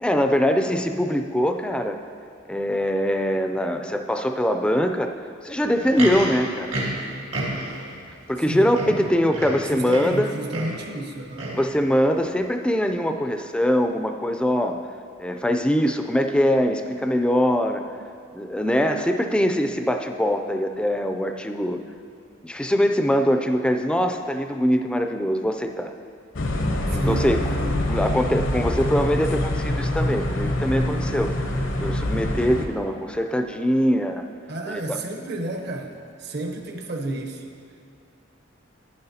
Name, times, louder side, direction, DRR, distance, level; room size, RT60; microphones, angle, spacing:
voice 1, 0.0-2.0 2.5-5.1 5.4-6.7 8.3-10.3 11.5-14.8 15.2-17.8 18.3-21.8 22.4-25.9 26.9-27.4 27.8-34.2 34.7-35.0, equal, 5° left, 6 dB, 0.3 m, -23 dB
Livestock farm animals working animals, 5.6-7.9 8.4-8.5 8.7-10.2 10.5-10.8 11.3-11.7 12.4-12.5, right 1 dB, 90° right, 1.8 m, -30 dB
voice 2, 9.7-11.5 26.9-27.3 27.6-27.9 34.5-35.9 36.2-37.4, right 2 dB, 60° right, 3 dB, 0.9 m, -31 dB
sound 1, 26.3-32.7, left 1 dB, 80° left, 0.8 m, -25 dB
10.5 x 10.0 x 2.8 m, 2.4 s
head